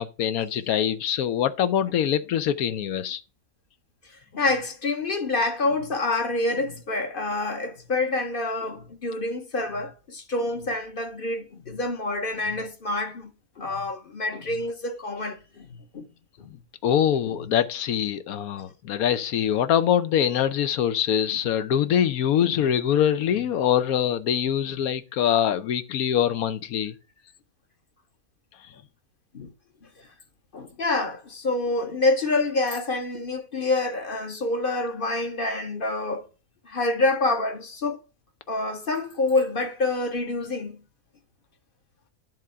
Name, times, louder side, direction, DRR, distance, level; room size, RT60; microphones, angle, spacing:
voice 1, 0.0-3.2 16.8-26.9, left 9 dB, 75° left, 1.1 m, -24 dB
voice 2, 4.0-13.3 13.6-16.1 16.4-16.5 17.2-17.4 22.4-22.5 24.7-24.8 29.3-29.5 30.5-36.3 36.6-38.0 38.5-40.8, left 2 dB, 40° left, 1.0 m, -27 dB
10.5 x 3.7 x 5.5 m
omnidirectional pair, 1.6 m